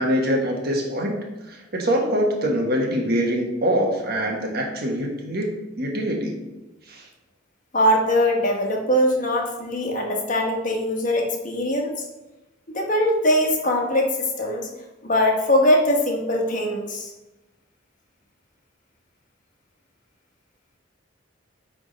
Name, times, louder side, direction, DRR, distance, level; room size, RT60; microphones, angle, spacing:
voice 1, 0.0-6.4 6.9-7.0, equal, 50° right, 1 dB, 1.3 m, -24 dB
voice 2, 7.7-12.1 12.7-14.7 15.0-17.1, left 1 dB, 40° left, 0 dB, 1.2 m, -21 dB
9.3 x 3.6 x 3.9 m, 1.1 s
head